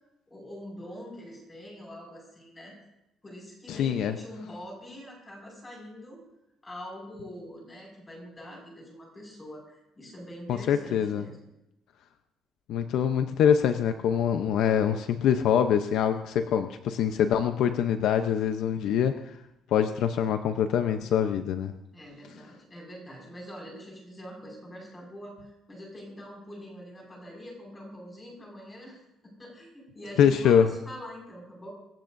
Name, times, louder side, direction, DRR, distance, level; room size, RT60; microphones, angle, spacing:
voice 1, 0.3-2.7 3.2-6.2 6.6-11.4 21.9-31.7, equal, 15° left, -1 dB, 5.8 m, -44 dB
voice 2, 3.7-4.2 10.5-11.3 12.7-19.4 19.7-21.7 30.2-30.7, left 8 dB, 70° left, 8 dB, 0.7 m, -24 dB
25.5 x 15.0 x 2.7 m, 0.86 s
cardioid pair, 165°, 0 cm